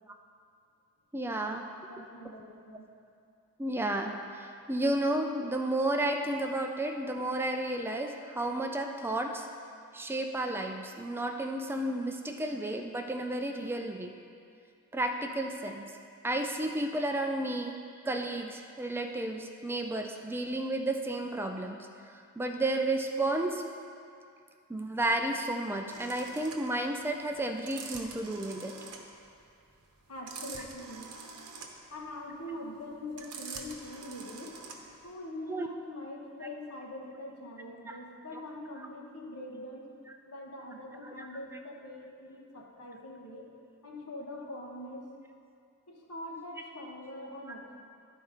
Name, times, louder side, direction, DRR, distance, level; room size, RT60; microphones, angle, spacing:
voice 1, 1.1-1.7 3.6-9.5 9.9-14.2 14.9-15.9 16.2-21.8 22.1-23.6 24.7-28.7 35.5-35.7 37.9-38.0 41.0-41.3, right 1 dB, 10° right, 4 dB, 0.4 m, -32 dB
voice 2, 1.9-2.9 30.1-31.1 31.9-34.5 35.0-39.9 40.3-43.4 43.8-45.1 45.9-47.8, left 1 dB, 80° left, -1 dB, 1.2 m, -43 dB
sound 1, 25.9-35.1, right 5 dB, 80° right, 0.8 m, -45 dB
11.0 x 4.1 x 5.1 m, 2.4 s
head